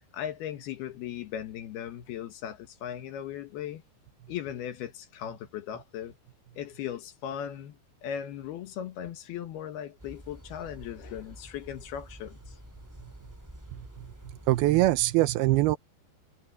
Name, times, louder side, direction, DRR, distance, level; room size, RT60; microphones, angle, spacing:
voice 1, 0.0-3.8 4.3-6.2 6.6-12.6, left 10 dB, 70° left, 3.1 m, -38 dB
sound 1, 10.0-15.0, right 1 dB, 10° right, 0.7 m, -48 dB
voice 2, 13.7-15.8, right 17 dB, 80° right, 2.4 m, -24 dB
omnidirectional pair, 5.1 m